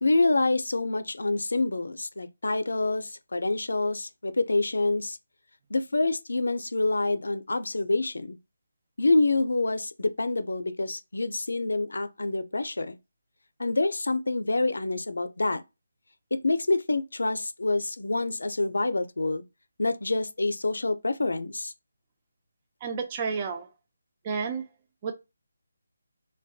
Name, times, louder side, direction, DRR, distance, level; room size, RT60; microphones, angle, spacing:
voice 1, 0.0-5.2 5.7-8.4 9.0-13.0 13.6-15.6 16.3-19.4 19.8-21.7, left 2 dB, 85° left, 0.4 m, -27 dB
voice 2, 22.8-23.7 24.2-24.6 25.0-25.1, right 5 dB, 25° right, 0.3 m, -30 dB
2.6 x 2.1 x 2.3 m
figure-of-eight pair, 165°, 0 cm